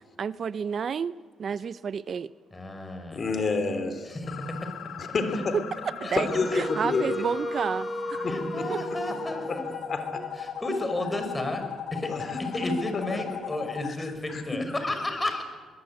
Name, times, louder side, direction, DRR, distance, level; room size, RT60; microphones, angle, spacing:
voice 1, 0.2-2.3 6.0-8.3 8.7-8.8 10.2-10.3, right 6 dB, 50° right, 16 dB, 0.6 m, -31 dB
voice 2, 2.5-3.2 4.1-4.9 6.0-6.2 8.3-9.7 10.4-11.6 11.9-12.1 12.4-15.4, left 2 dB, 20° left, 7 dB, 5.4 m, -32 dB
voice 3, 3.1-4.2 5.0-5.5 6.1-7.2 8.2-8.6 9.5-9.6 9.9-10.2 12.1-12.7 14.0-14.4, left 4 dB, 45° left, 8 dB, 3.2 m, -29 dB
Wind instrument woodwind instrument, 4.2-9.9, right 5 dB, 80° right, 3.7 m, -48 dB
sound 1, 4.3-13.9, left 9 dB, 85° left, 1.6 m, -38 dB
Wind instrument woodwind instrument 2, 6.3-11.2, equal, ahead, 1.5 m, -36 dB
22.5 x 21.0 x 8.7 m, 1.5 s
cardioid pair, 90°, 0 cm